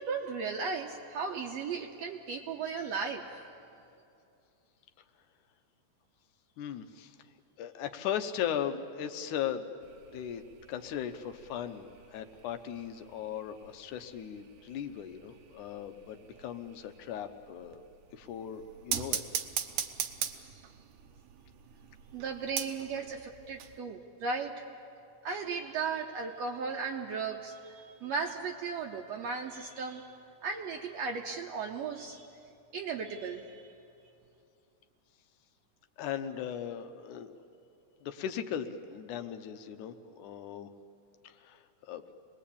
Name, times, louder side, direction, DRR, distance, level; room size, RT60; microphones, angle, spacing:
voice 1, 0.0-3.4 22.1-24.7 25.2-30.1 30.4-32.3 32.7-33.7, right 5 dB, 65° right, 2 dB, 1.9 m, -36 dB
voice 2, 6.6-7.2 7.6-9.7 10.1-10.4 10.7-17.8 18.1-19.2 36.0-37.4 38.0-40.7 41.2-42.0, left 9 dB, 80° left, 8 dB, 2.4 m, -38 dB
sound 1, 9.8-23.8, right 9 dB, 85° right, 2.7 m, -42 dB
27.0 x 20.5 x 8.6 m, 2.6 s
omnidirectional pair, 3.5 m